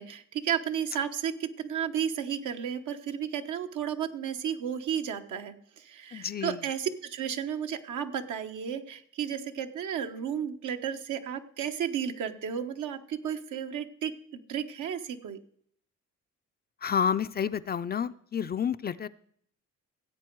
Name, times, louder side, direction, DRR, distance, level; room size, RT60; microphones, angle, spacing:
voice 1, 0.0-15.4, right 8 dB, 80° right, 6 dB, 1.1 m, -33 dB
voice 2, 6.1-6.6 16.8-19.1, left 7 dB, 35° left, 13 dB, 0.4 m, -30 dB
16.0 x 8.0 x 4.6 m, 0.64 s
cardioid pair, 90°, 30 cm